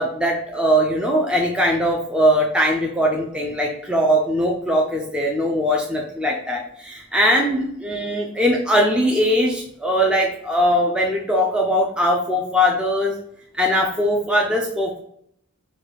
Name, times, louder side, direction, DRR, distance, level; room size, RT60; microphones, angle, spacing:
voice 1, 0.0-13.2 13.5-15.0, equal, 5° right, -1 dB, 0.4 m, -20 dB
4.8 x 2.2 x 4.0 m, 0.69 s
head